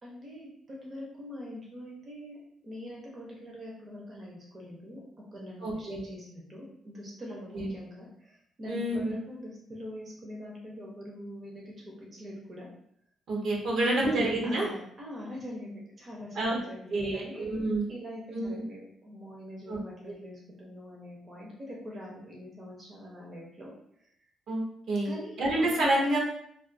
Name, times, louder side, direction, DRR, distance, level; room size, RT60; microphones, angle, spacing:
voice 1, 0.0-5.0 5.3-12.7 13.8-17.5 17.9-23.7 24.0-24.1 25.0-26.0, left 1 dB, 35° right, -3 dB, 0.7 m, -43 dB
voice 2, 5.6-6.0 7.5-7.7 8.7-9.0 13.3-14.7 16.3-16.6 16.9-17.9 18.3-18.6 19.7-19.8 24.5-24.6 24.9-25.1 25.4-26.2, right 1 dB, 70° right, -3 dB, 0.8 m, -28 dB
2.4 x 2.4 x 2.5 m, 0.69 s
cardioid pair, 90°, 0 cm